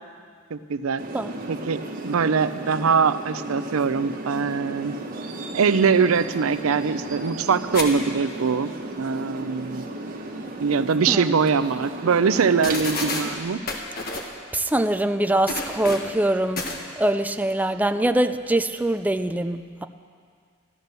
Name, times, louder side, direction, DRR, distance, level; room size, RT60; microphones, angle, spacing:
voice 1, 0.5-1.0 1.5-4.9 5.5-8.7 9.0-9.8 10.6-13.6, right 5 dB, 90° right, 13 dB, 0.5 m, -22 dB
sound 1, 1.0-13.4, right 1 dB, 45° right, 1.4 m, -35 dB
sound 2, 7.7-7.9 8.2-8.3 11.0-11.1 11.5-11.6 12.4-12.5 12.6-13.3 13.7-14.3 15.5-16.1 16.6-16.8, left 3 dB, 45° left, 1.5 m, -29 dB
voice 2, 14.5-16.7 17.0-19.9, right 1 dB, 10° right, 9 dB, 0.4 m, -23 dB
13.5 x 12.0 x 6.7 m, 2.1 s
head